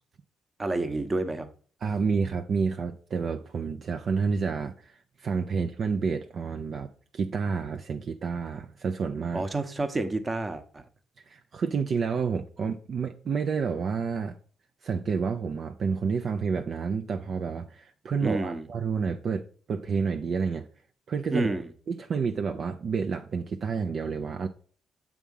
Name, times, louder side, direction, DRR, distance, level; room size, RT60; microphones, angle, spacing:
voice 1, 0.6-1.5 9.3-10.8 18.2-18.6 21.3-21.7, right 2 dB, 25° right, 0.9 m, -29 dB
voice 2, 1.8-9.4 11.3-14.4 14.8-20.7 21.1-21.6 21.9-24.5, right 5 dB, 55° right, 0.5 m, -29 dB
7.1 x 3.6 x 5.4 m
cardioid pair, 90°, 0 cm